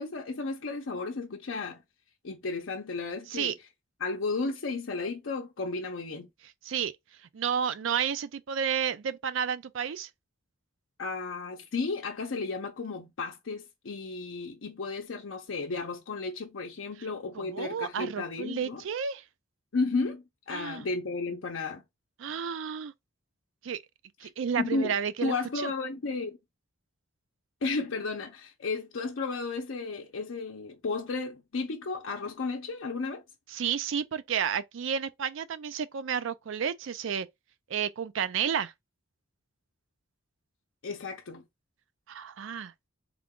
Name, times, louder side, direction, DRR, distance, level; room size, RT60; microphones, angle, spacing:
voice 1, 0.0-1.8 2.2-3.5 4.0-6.3 11.0-18.8 19.7-21.8 24.2-24.3 24.6-24.9 25.2-26.4 27.6-33.2 40.8-41.4, left 3 dB, 70° left, 0.6 m, -33 dB
voice 2, 7.3-10.1 17.4-19.2 20.5-20.8 22.2-22.9 23.6-23.8 24.2-25.7 33.5-37.3 37.7-38.7 42.1-42.7, right 7 dB, 65° right, 0.4 m, -31 dB
3.7 x 2.2 x 3.6 m
head